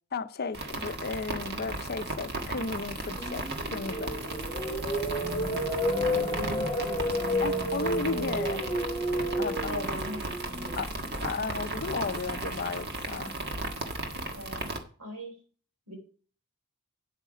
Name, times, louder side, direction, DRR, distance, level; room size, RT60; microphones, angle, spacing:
voice 1, 0.1-4.1 7.4-8.6 9.4-9.9 10.8-10.9 11.2-13.3, left 4 dB, 45° left, 0.6 m, -34 dB
sound 1, 0.5-14.8, right 2 dB, 45° right, 1.6 m, -36 dB
sound 2, 2.8-12.9, equal, 15° left, 3.3 m, -32 dB
voice 2, 5.2-5.7 6.1-6.7 9.7-10.8 11.4-11.6 14.3-14.7 15.0-15.3 15.9-16.0, equal, 90° right, 4.3 m, -41 dB
9.2 x 8.2 x 5.0 m
head